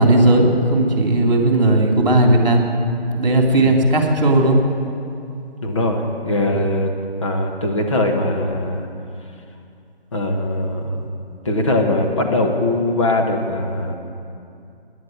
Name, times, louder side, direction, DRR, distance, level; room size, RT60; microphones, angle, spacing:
voice 1, 0.0-2.6 3.1-4.6, right 1 dB, 45° right, 1 dB, 3.1 m, -15 dB
voice 2, 5.6-6.9 7.2-8.9 10.1-11.1 11.4-13.9, left 1 dB, 30° left, 1 dB, 1.5 m, -21 dB
17.5 x 10.5 x 8.0 m, 2.5 s
figure-of-eight pair, 170°, 31 cm